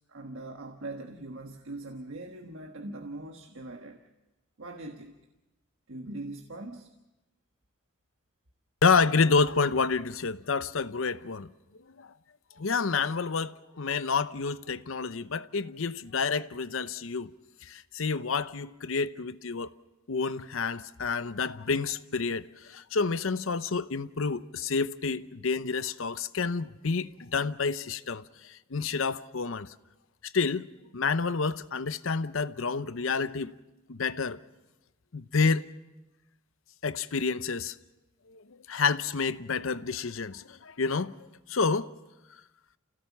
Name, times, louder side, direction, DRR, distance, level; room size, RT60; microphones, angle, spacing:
voice 1, 0.1-4.0 4.6-5.1 5.9-6.9, right 2 dB, 70° right, 1.4 m, -41 dB
voice 2, 8.8-11.5 12.0-12.1 12.6-17.3 17.6-19.7 20.1-29.7 30.3-33.5 33.9-34.4 35.1-35.7 36.8-37.8 38.3-41.2 41.5-41.9, left 4 dB, 75° left, 0.7 m, -29 dB
29.0 x 16.5 x 7.3 m
head